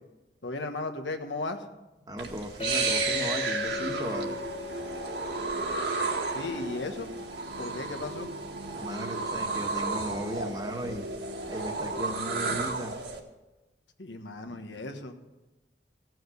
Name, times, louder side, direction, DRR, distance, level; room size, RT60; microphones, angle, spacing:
voice 1, 0.4-1.6 6.3-7.1 7.6-8.3 14.0-15.1, left 2 dB, 90° left, 5 dB, 1.4 m, -35 dB
voice 2, 2.1-4.4 8.7-11.1 11.5-12.9 14.4-14.6, right 1 dB, 20° right, 4 dB, 1.3 m, -36 dB
sound 1, 2.2-13.2, right 4 dB, 70° right, 1.9 m, -33 dB
Chink clink, 2.6-6.8, left 5 dB, 30° left, 0.7 m, -37 dB
sound 2, 3.7-12.7, equal, 55° right, 1.0 m, -41 dB
16.0 x 6.3 x 8.3 m, 1.1 s
head